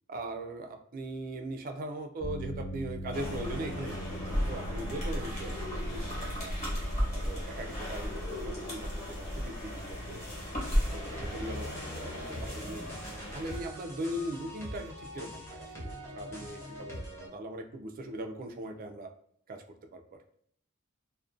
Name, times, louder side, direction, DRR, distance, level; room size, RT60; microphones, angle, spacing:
voice 1, 0.1-6.7 7.1-10.2 10.7-12.9 13.3-19.1 19.5-20.2, right 1 dB, 40° right, 5 dB, 0.3 m, -40 dB
sound 1, 2.2-16.5, equal, 50° left, 0.6 m, -45 dB
sound 2, 3.1-13.6, equal, 35° left, 1.0 m, -35 dB
sound 3, 10.3-17.3, equal, 10° left, 0.6 m, -44 dB
2.4 x 2.1 x 2.4 m, 0.65 s
head